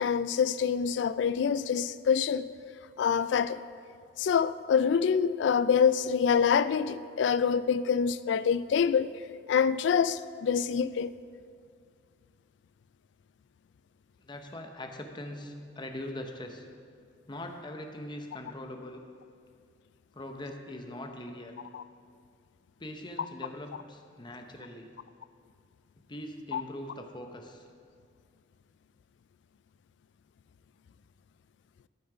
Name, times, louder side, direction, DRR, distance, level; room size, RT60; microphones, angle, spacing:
voice 1, 0.0-2.5 3.0-3.6 4.2-9.1 9.5-11.1 21.7-21.8 26.5-26.6, left 7 dB, 65° left, 0.3 m, -26 dB
voice 2, 14.2-16.6 17.3-19.0 20.1-21.5 22.8-24.9 26.1-27.6, left 1 dB, 25° left, 0.8 m, -41 dB
12.0 x 6.3 x 4.9 m
head